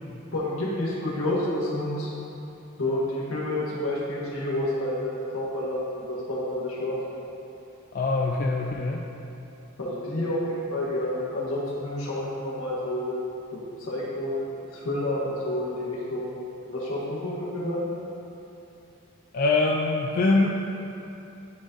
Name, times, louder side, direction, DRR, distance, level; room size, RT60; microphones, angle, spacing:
voice 1, 0.3-2.1 2.8-6.9 9.8-13.1 13.5-14.4 14.7-16.3 16.7-17.8, left 1 dB, 75° left, -6 dB, 1.5 m, -29 dB
voice 2, 7.9-9.0 19.3-20.5, left 3 dB, 45° left, -1 dB, 0.4 m, -23 dB
10.5 x 3.8 x 2.6 m, 2.8 s
head